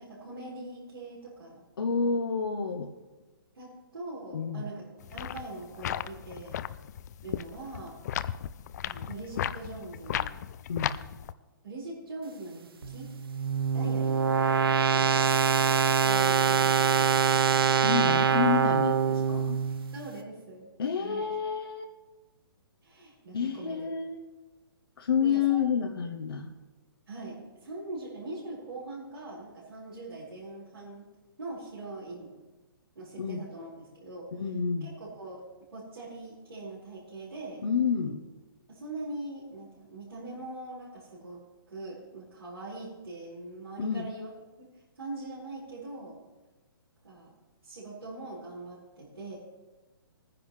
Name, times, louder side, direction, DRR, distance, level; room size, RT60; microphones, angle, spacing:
voice 1, 0.0-1.6 3.5-6.6 7.2-8.0 8.8-10.4 11.6-13.1 13.7-14.4 19.7-20.7 21.0-21.3 22.8-23.9 25.2-25.6 26.0-26.1 27.1-31.1 31.4-32.3 32.9-34.3 34.8-35.4 35.7-37.6 38.7-41.4 41.7-44.3 44.6-46.2 47.0-47.3 47.6-49.4, right 2 dB, 85° right, -10 dB, 4.8 m, -42 dB
voice 2, 1.8-2.9 4.3-4.6 10.7-10.9 17.8-19.6 20.8-21.9 23.3-24.2 25.0-26.5 33.2-33.5 34.4-34.9 37.6-38.2 43.8-44.1, left 6 dB, 70° left, 3 dB, 1.0 m, -29 dB
sound 1, 5.0-11.3, left 10 dB, 45° left, 0.4 m, -35 dB
sound 2, 12.8-19.9, right 7 dB, 70° right, 1.3 m, -24 dB
20.0 x 10.0 x 3.2 m, 1.2 s
hypercardioid pair, 135°, 12 cm